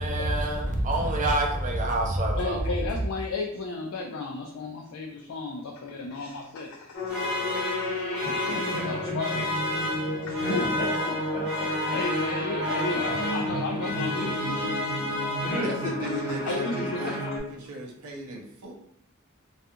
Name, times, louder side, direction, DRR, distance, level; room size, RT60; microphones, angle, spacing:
voice 1, 0.0-2.7, right 1 dB, 35° right, 1 dB, 0.5 m, -26 dB
voice 2, 2.4-8.1 8.8-9.5 10.2-10.5 11.9-15.2 16.0-17.4, left 3 dB, 65° left, 1 dB, 0.3 m, -34 dB
sound 1, 6.9-17.4, left 1 dB, 50° left, 0.8 m, -32 dB
sound 2, 7.1-16.1, left 1 dB, 5° right, 0.9 m, -32 dB
voice 3, 8.2-8.9 10.4-11.6 12.9-13.2 15.4-16.1, left 1 dB, 25° left, -6 dB, 1.0 m, -33 dB
voice 4, 15.5-17.2 17.5-18.7, right 1 dB, 85° right, 0 dB, 0.6 m, -37 dB
2.4 x 2.3 x 2.6 m, 0.71 s
head